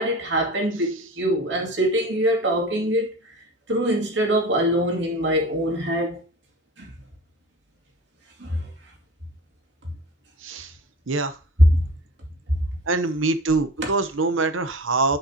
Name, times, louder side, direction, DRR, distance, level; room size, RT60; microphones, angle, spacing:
voice 1, 0.0-3.1 3.7-6.2 6.8-6.9 8.4-8.6 11.6-11.8, equal, 65° right, 2.4 m, -22 dB
voice 2, 10.4-10.7 11.1-11.4 12.9-15.2, right 3 dB, 90° right, 0.9 m, -24 dB
10.5 x 5.5 x 2.9 m
head